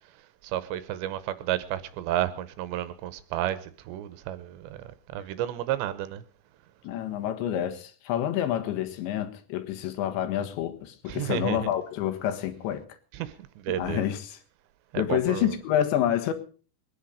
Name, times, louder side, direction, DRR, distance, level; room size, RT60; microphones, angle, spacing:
voice 1, 0.4-4.8 5.1-6.2 11.1-11.6 13.1-13.3 13.6-14.0 14.9-15.5, right 12 dB, 75° right, 2.9 m, -31 dB
voice 2, 6.8-12.8 13.8-14.4 15.0-16.3, left 11 dB, 75° left, 3.6 m, -28 dB
23.0 x 10.5 x 5.0 m
omnidirectional pair, 5.5 m